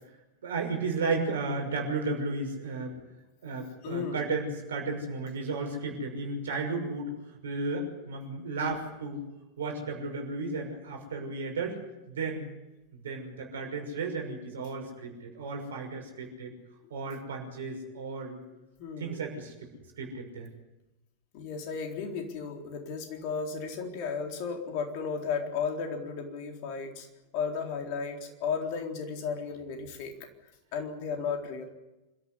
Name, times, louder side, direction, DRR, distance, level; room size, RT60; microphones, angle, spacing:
voice 1, 0.4-2.9 3.4-7.1 7.4-9.2 9.6-11.8 12.1-12.5 12.9-16.5 16.9-18.4 19.0-19.7 20.0-20.5, right 3 dB, 60° right, 3 dB, 6.1 m, -34 dB
voice 2, 3.8-4.3 18.8-19.3 21.3-27.1 27.3-30.1 30.7-31.7, left 5 dB, 45° left, 3 dB, 4.1 m, -34 dB
26.5 x 14.0 x 9.9 m, 1.0 s
figure-of-eight pair, 90°, 0 cm